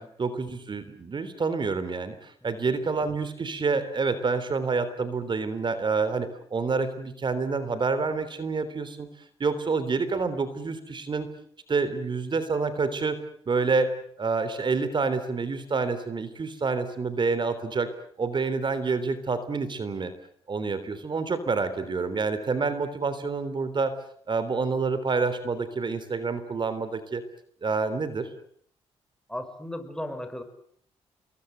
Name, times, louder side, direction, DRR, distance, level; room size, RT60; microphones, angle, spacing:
voice 1, 0.0-9.1 9.4-11.3 11.7-13.2 13.5-17.9 18.2-20.1 20.5-23.9 24.3-27.2 27.6-28.3, right 4 dB, 45° right, 13 dB, 3.4 m, -28 dB
voice 2, 29.3-30.4, left 1 dB, 5° left, 8 dB, 6.2 m, -36 dB
28.0 x 22.0 x 8.1 m, 0.63 s
cardioid pair, 75°, 11 cm